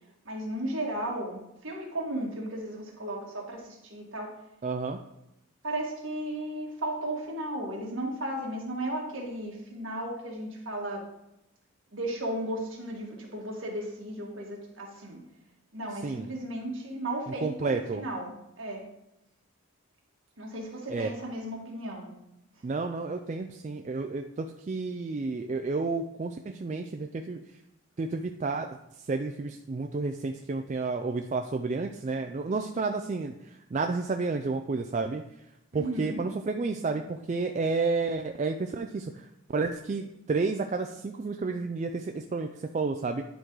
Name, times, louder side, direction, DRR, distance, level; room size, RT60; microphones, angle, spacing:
voice 1, 0.3-4.3 5.6-11.0 11.9-15.2 15.7-18.8 20.4-22.1 35.7-36.2, right 1 dB, 60° right, -2 dB, 1.9 m, -35 dB
voice 2, 4.6-5.0 16.0-16.3 17.4-18.0 20.9-21.1 22.6-27.4 28.0-28.8 29.1-35.2 35.7-43.3, right 3 dB, 35° right, 5 dB, 0.3 m, -31 dB
10.5 x 3.8 x 4.7 m, 0.86 s
head